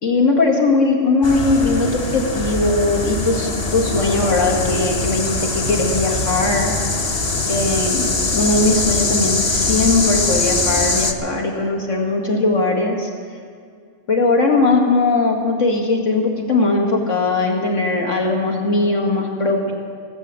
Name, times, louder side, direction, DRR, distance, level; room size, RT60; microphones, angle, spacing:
voice 1, 0.0-6.7 7.5-13.1 14.1-19.7, left 3 dB, 85° left, 0 dB, 2.3 m, -19 dB
sound 1, 1.2-11.1, left 3 dB, 35° left, 0.8 m, -22 dB
17.5 x 8.5 x 7.5 m, 2.2 s
omnidirectional pair, 1.3 m